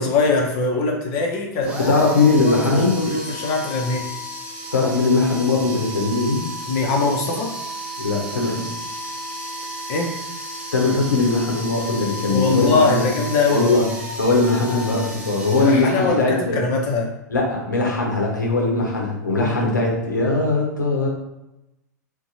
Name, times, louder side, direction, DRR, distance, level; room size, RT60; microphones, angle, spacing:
voice 1, 0.0-1.9 2.5-4.1 6.7-7.5 9.9-10.1 12.3-13.7 15.6-17.1 18.8-18.9 19.4-19.7, left 3 dB, 45° left, 1 dB, 0.6 m, -22 dB
sound 1, 1.6-16.5, right 1 dB, 10° right, 0.7 m, -33 dB
voice 2, 1.8-3.2 4.7-6.4 8.0-8.8 10.7-13.1 13.5-13.8 14.2-16.6 17.3-21.1, left 3 dB, 80° left, -1 dB, 0.7 m, -20 dB
2.6 x 2.2 x 2.8 m, 0.91 s
figure-of-eight pair, 95°, 10 cm